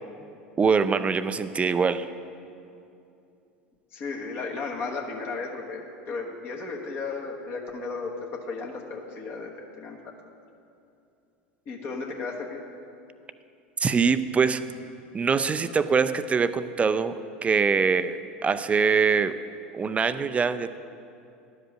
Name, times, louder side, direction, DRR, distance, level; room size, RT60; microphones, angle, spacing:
voice 1, 0.6-2.1 13.8-14.6 15.1-19.4 19.7-20.8, right 5 dB, 25° right, 13 dB, 0.4 m, -23 dB
voice 2, 3.9-8.1 8.5-9.5 9.8-10.0 11.7-12.6, left 4 dB, 45° left, -1 dB, 1.3 m, -34 dB
11.5 x 5.1 x 6.5 m, 2.6 s
hypercardioid pair, 80°, 6 cm